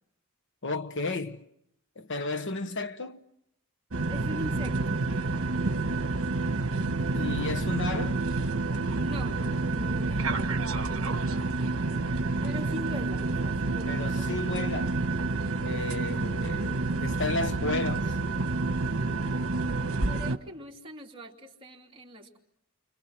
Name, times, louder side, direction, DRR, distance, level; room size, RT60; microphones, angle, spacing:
voice 1, 0.6-1.4 2.0-3.2 7.1-8.2 13.9-14.9 15.6-18.2, left 3 dB, 60° left, 1.3 m, -33 dB
Taxi Disarm Doors and Stop, 3.9-20.4, right 3 dB, 70° right, 1.4 m, -29 dB
voice 2, 4.1-5.1 9.0-10.6 12.4-14.0 19.9-22.4, left 1 dB, 25° right, 3.1 m, -42 dB
29.5 x 26.0 x 6.0 m
head